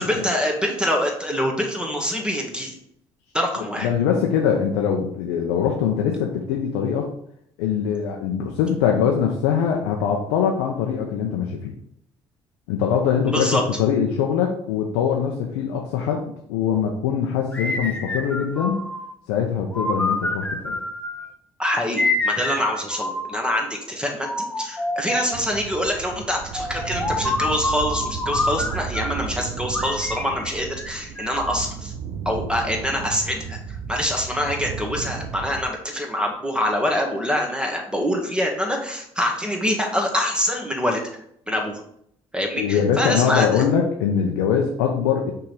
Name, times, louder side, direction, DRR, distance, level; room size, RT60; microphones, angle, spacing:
voice 1, 0.0-2.8 3.3-3.9 13.3-13.6 21.6-31.9 32.3-41.0 41.5-41.8 42.3-43.6, equal, 5° right, 1 dB, 1.8 m, -25 dB
voice 2, 3.8-7.1 7.6-11.8 12.7-18.8 19.3-20.8 42.6-45.3, left 7 dB, 80° left, 1 dB, 0.7 m, -22 dB
sound 1, 17.5-19.1 19.7-21.3 22.0-23.6 24.2-25.4 26.5-29.3 29.7-31.5, left 2 dB, 10° left, 1.0 m, -27 dB
sound 2, 25.3-35.7, right 6 dB, 70° right, 0.8 m, -34 dB
5.9 x 3.6 x 4.8 m, 0.71 s
hypercardioid pair, 50°, 14 cm